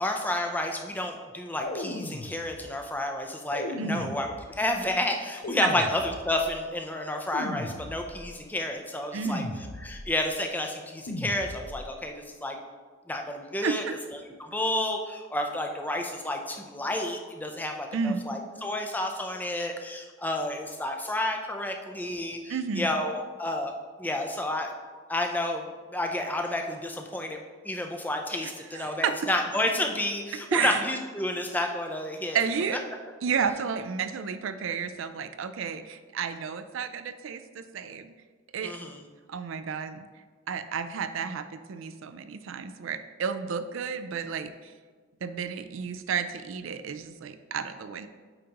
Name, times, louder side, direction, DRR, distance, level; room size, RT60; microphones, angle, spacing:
voice 1, 0.0-9.4 9.8-12.6 13.1-13.8 14.4-23.7 24.0-24.7 25.1-25.6 25.9-27.4 27.6-32.4 38.6-39.0, left 1 dB, 10° left, 3 dB, 0.5 m, -30 dB
sound 1, 1.6-2.8 3.5-4.7 5.4-6.6 7.3-8.4 9.3-10.2 11.1-12.0, left 1 dB, 70° left, 0.7 m, -37 dB
voice 2, 3.8-4.1 5.6-5.7 9.1-9.5 13.6-14.0 17.9-18.2 22.5-22.9 28.4-29.2 30.5-30.8 32.3-32.8 33.2-38.1 38.5-38.8 39.3-40.1 40.5-44.7 45.2-48.1, right 6 dB, 70° right, 11 dB, 0.4 m, -31 dB
8.7 x 5.0 x 2.9 m, 1.5 s
head